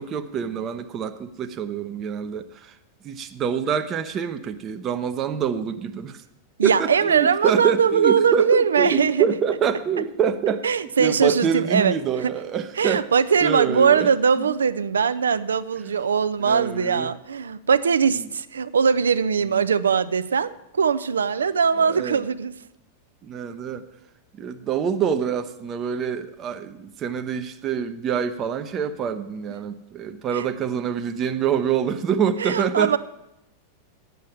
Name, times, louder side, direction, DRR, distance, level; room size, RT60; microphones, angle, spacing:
voice 1, 0.0-2.8 3.0-6.2 6.6-10.7 11.0-13.1 13.4-14.1 14.4-14.5 15.8-15.9 16.4-17.1 19.4-19.6 21.8-22.2 23.2-23.8 24.3-33.0, right 7 dB, 30° right, 8 dB, 0.7 m, -26 dB
voice 2, 6.6-9.3 10.6-12.0 12.2-12.3 12.8-22.5 30.3-30.4 32.4-33.0, right 6 dB, 70° right, 15 dB, 0.5 m, -21 dB
9.3 x 7.4 x 8.5 m, 0.90 s
figure-of-eight pair, 90°, 0 cm